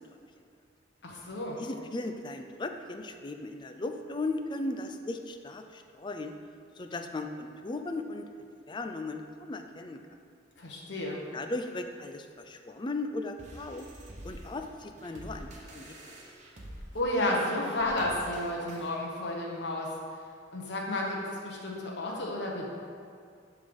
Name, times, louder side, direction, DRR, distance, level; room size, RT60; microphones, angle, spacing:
voice 1, 1.0-1.6 10.6-11.2 16.9-19.9 20.5-22.7, left 1 dB, 65° left, -2 dB, 1.1 m, -32 dB
voice 2, 1.6-6.3 6.8-8.3 8.7-10.0 11.3-13.9 14.2-16.1, left 2 dB, 25° left, 6 dB, 0.4 m, -37 dB
sound 1, 13.4-19.0, right 1 dB, 40° right, 1.1 m, -47 dB
10.5 x 3.7 x 5.2 m, 2.3 s
head